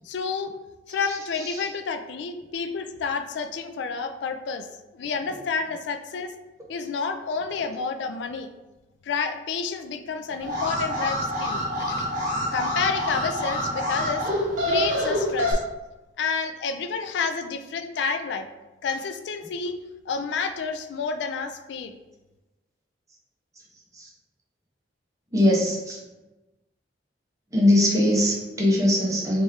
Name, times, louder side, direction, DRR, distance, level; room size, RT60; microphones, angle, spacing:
voice 1, 0.1-0.5 0.9-4.7 4.9-6.3 6.7-8.5 9.0-11.6 11.9-12.0 12.2-14.2 14.7-15.6 16.2-18.5 18.8-19.7 20.1-22.0, left 5 dB, 80° left, 8 dB, 0.3 m, -29 dB
Alarm, 10.4-15.5, equal, 45° right, 0.9 m, -27 dB
voice 2, 25.3-26.0 27.5-29.4, left 1 dB, 20° right, -3 dB, 0.7 m, -21 dB
3.3 x 3.0 x 3.5 m, 1.1 s
head